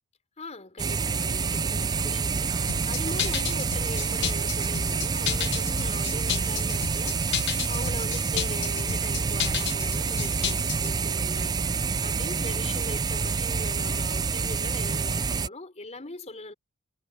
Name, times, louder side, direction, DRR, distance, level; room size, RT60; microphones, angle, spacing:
voice 1, 0.4-7.3 7.7-16.5, left 2 dB, 30° left, 4.2 m, -41 dB
sound 1, 0.8-15.5, right 5 dB, 20° right, 0.3 m, -27 dB
sound 2, 2.7-11.0, left 10 dB, 55° left, 0.7 m, -32 dB
head